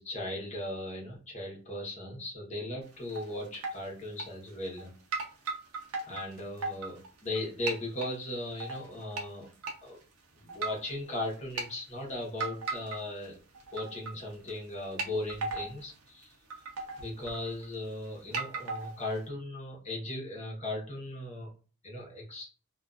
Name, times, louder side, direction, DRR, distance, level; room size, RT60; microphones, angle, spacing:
voice 1, 0.0-4.9 6.1-9.5 9.8-10.0 10.4-13.4 13.7-16.3 17.0-21.5 21.8-22.5, left 1 dB, 30° left, -2 dB, 0.9 m, -37 dB
sound 1, 2.8-3.3 3.5-3.8 4.2-4.8 5.1-7.4 7.7-8.1 8.6-9.3 9.6-9.8 10.5-10.9 11.3-11.7 12.4-13.3 13.5-14.2 14.5-14.6 15.0-15.8 16.2-16.3 16.5-17.8 18.3-19.2, right 3 dB, 85° right, 0.6 m, -36 dB
2.5 x 2.4 x 2.3 m, 0.37 s
head